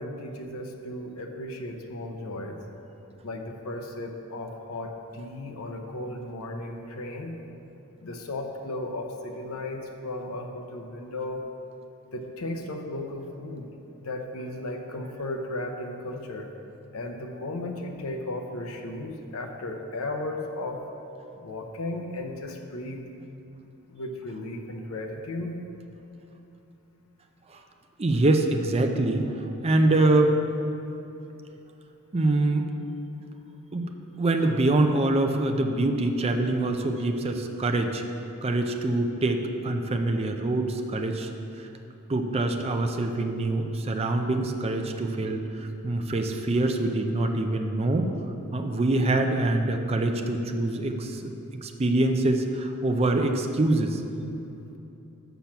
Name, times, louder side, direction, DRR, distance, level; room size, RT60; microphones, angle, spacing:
voice 1, 0.0-2.6 3.2-7.4 8.0-11.4 12.1-13.7 14.0-16.5 16.9-20.8 21.4-23.1 23.9-25.6, left 1 dB, 75° left, 3 dB, 0.7 m, -35 dB
voice 2, 28.0-29.3 29.6-30.4 32.1-32.7 33.7-33.9 34.2-38.0 38.4-41.3 42.1-48.1 48.5-51.3 51.6-54.0, right 2 dB, 30° right, 5 dB, 0.5 m, -24 dB
6.9 x 5.9 x 5.8 m, 2.9 s
head